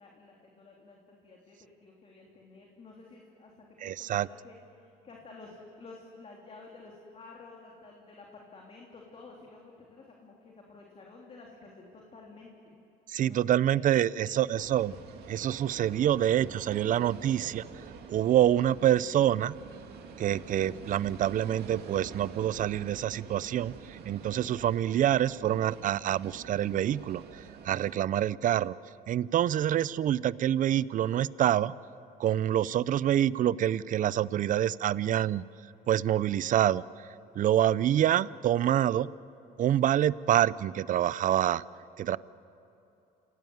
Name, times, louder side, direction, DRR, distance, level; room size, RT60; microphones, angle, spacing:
voice 1, 0.0-12.8 13.2-13.4 13.7-14.7 32.4-32.8, left 3 dB, 35° left, -1 dB, 3.3 m, -52 dB
voice 2, 3.8-4.3 13.1-14.9 15.3-17.6 18.1-19.5 20.2-28.8 29.1-31.7 32.2-35.4 35.9-36.8 37.4-39.1 39.6-41.6 42.0-42.2, right 11 dB, 50° right, 19 dB, 0.6 m, -26 dB
sound 1, 14.5-27.9, right 6 dB, 70° right, 2.4 m, -47 dB
27.5 x 18.0 x 9.4 m, 2.9 s
cardioid pair, 110°, 17 cm